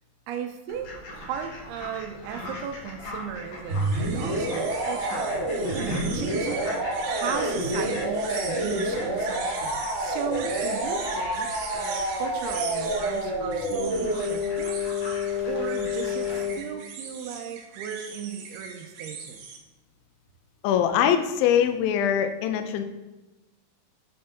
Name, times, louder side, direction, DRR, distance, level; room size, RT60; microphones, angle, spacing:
voice 1, 0.3-14.8 15.5-16.3 16.6-19.5, right 7 dB, 90° right, 6 dB, 2.6 m, -36 dB
Fowl, 0.7-16.4, left 1 dB, 55° left, 2.2 m, -41 dB
sound 1, 3.7-16.5, equal, 45° right, 2.7 m, -28 dB
sound 2, 3.7-19.6, right 5 dB, 75° right, 2.6 m, -39 dB
voice 2, 20.6-22.8, left 9 dB, 80° left, 7 dB, 2.2 m, -22 dB
8.7 x 4.3 x 5.2 m, 1.0 s
omnidirectional pair, 4.5 m